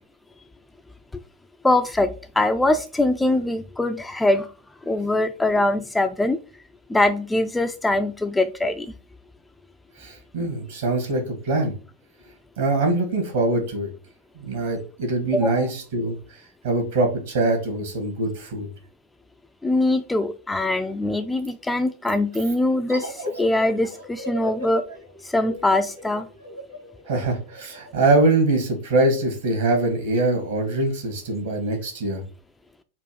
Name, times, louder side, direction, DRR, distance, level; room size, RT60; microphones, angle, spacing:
voice 1, 1.6-4.5 4.9-6.4 6.9-8.9 15.3-15.7 19.6-24.8 25.2-26.3, left 2 dB, 5° left, 8 dB, 0.3 m, -22 dB
voice 2, 10.0-11.7 12.6-13.9 14.3-16.2 16.6-18.7 27.1-32.2, right 2 dB, 60° right, 3 dB, 1.6 m, -23 dB
sound 1, 22.9-28.2, left 1 dB, 80° right, 1.5 m, -36 dB
4.4 x 2.5 x 4.8 m, 0.35 s
figure-of-eight pair, 90°, 0 cm